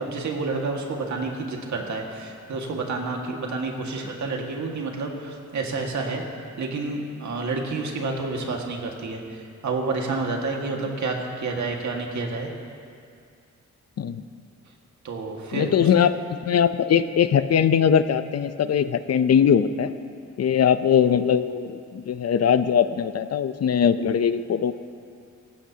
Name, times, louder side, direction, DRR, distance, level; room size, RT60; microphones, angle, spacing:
voice 1, 0.0-6.2 6.6-12.5 15.0-15.7, right 3 dB, 70° right, 1 dB, 1.9 m, -29 dB
voice 2, 15.5-16.2 16.5-19.9 20.4-24.7, left 8 dB, 55° left, 12 dB, 0.6 m, -21 dB
18.0 x 15.0 x 2.9 m, 2.3 s
cardioid pair, 90°, 30 cm